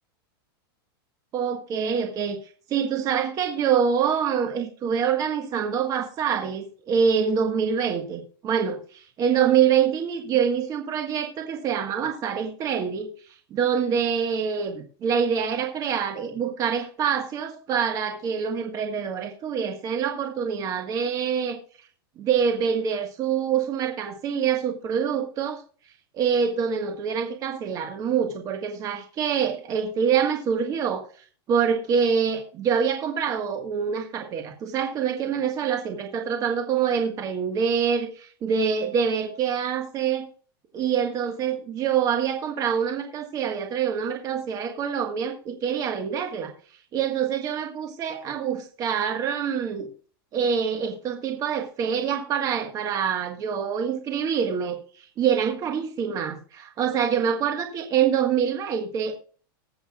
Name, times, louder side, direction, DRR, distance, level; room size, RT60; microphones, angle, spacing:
voice 1, 1.3-2.4 2.7-21.6 22.2-25.6 26.1-31.1 31.5-40.3 40.7-46.5 46.9-49.9 50.3-59.1, right 7 dB, 30° right, 1.5 m, -25 dB
19.5 x 7.9 x 2.4 m
supercardioid pair, 150°, 13 cm